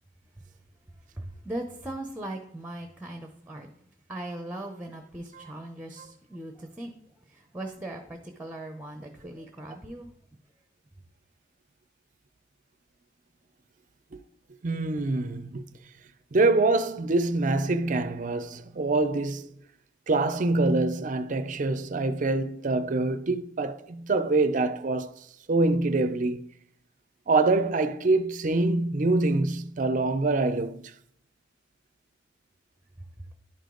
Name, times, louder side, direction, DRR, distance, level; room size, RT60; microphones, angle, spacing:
voice 1, 1.2-3.7 4.1-6.9 7.3-10.1, right 1 dB, 10° right, 0.8 m, -39 dB
voice 2, 14.6-15.6 16.3-19.5 20.1-25.1 25.5-26.5 27.3-30.8, right 2 dB, 45° right, 0.5 m, -25 dB
11.0 x 5.1 x 3.8 m
head